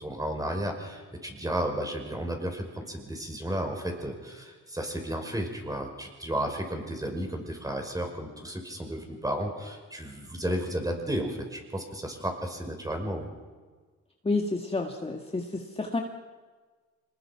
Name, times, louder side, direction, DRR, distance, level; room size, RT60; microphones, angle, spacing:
voice 1, 0.0-13.3, right 1 dB, 10° right, 3 dB, 5.5 m, -33 dB
voice 2, 14.2-16.0, left 3 dB, 20° left, 2 dB, 2.0 m, -30 dB
25.5 x 20.5 x 6.0 m, 1.4 s
cardioid pair, 90°, 30 cm